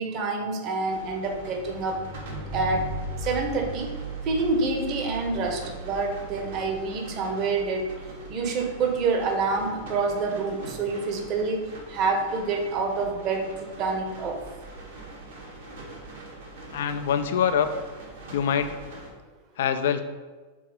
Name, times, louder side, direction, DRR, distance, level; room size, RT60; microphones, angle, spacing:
voice 1, 0.0-2.0 2.5-2.8 3.2-3.9 4.2-7.9 8.3-11.6 11.9-13.5 13.8-14.4, right 3 dB, 35° right, 3 dB, 1.3 m, -27 dB
sound 1, 0.8-19.1, right 2 dB, 65° right, 1.9 m, -40 dB
voice 2, 16.7-17.7 18.3-18.7 19.6-20.0, left 8 dB, 60° left, 10 dB, 0.5 m, -24 dB
6.0 x 4.2 x 5.8 m, 1.3 s
figure-of-eight pair, 90°, 0 cm